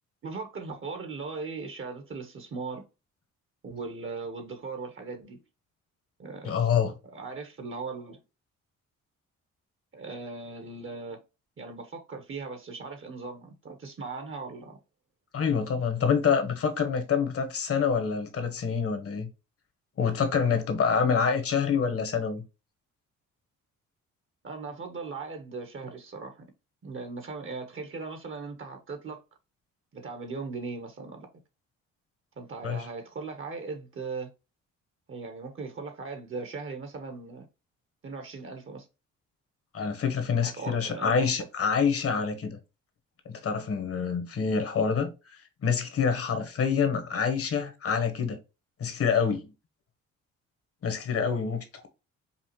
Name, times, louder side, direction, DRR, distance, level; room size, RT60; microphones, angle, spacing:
voice 1, 0.2-2.8 3.6-5.4 6.2-6.7 7.1-8.2 9.9-11.2 11.6-14.8 24.4-26.5 26.8-29.2 29.9-31.3 32.4-34.3 35.1-37.5 38.0-38.9 40.3-41.3, right 4 dB, 40° right, 1.1 m, -38 dB
voice 2, 6.4-6.9 15.3-19.3 20.0-22.4 32.6-32.8 39.7-42.6 43.2-45.1 45.6-48.4 48.8-49.5 50.8-51.9, left 6 dB, 50° left, 1.2 m, -26 dB
5.4 x 2.4 x 3.0 m
cardioid pair, 90°, 30 cm